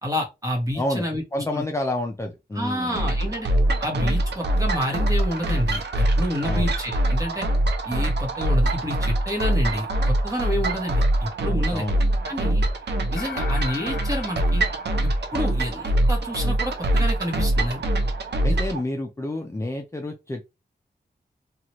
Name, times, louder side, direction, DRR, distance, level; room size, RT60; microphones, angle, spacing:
voice 1, 0.0-1.2 1.5-1.7 2.5-3.5 3.8-7.5 7.8-11.8 12.2-12.6 13.1-14.6 15.0-17.8 18.5-18.6, equal, 20° right, 1 dB, 1.1 m, -29 dB
voice 2, 1.3-3.0 6.5-6.7 11.7-12.0 18.4-20.5, left 1 dB, 15° left, 2 dB, 0.4 m, -29 dB
sound 1, 3.0-18.8, right 1 dB, 90° right, 0.6 m, -23 dB
sound 2, 13.2-15.8, left 6 dB, 85° left, 0.6 m, -38 dB
2.9 x 2.4 x 2.9 m, 0.24 s
wide cardioid pair, 115°, 17 cm